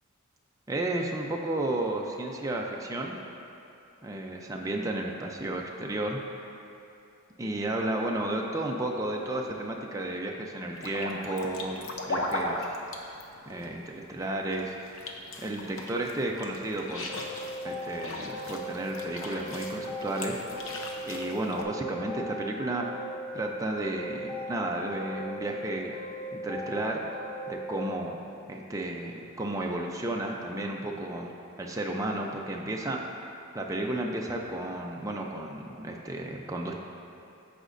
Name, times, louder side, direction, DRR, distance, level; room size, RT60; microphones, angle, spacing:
voice 1, 0.7-3.2 4.0-6.2 7.4-12.7 13.5-15.0 15.4-17.1 17.6-20.4 21.1-22.9 23.3-25.9 26.3-27.0 27.5-28.2 28.5-31.3 31.6-33.0 33.5-36.8, right 1 dB, 15° right, 0 dB, 0.4 m, -33 dB
sound 1, 10.7-21.6, left 1 dB, 65° left, 0.7 m, -38 dB
sound 2, 17.1-19.0 19.3-21.2 21.5-23.4 23.7-25.6 25.9-27.8, equal, 25° left, 1.1 m, -38 dB
14.5 x 5.0 x 2.6 m, 2.8 s
head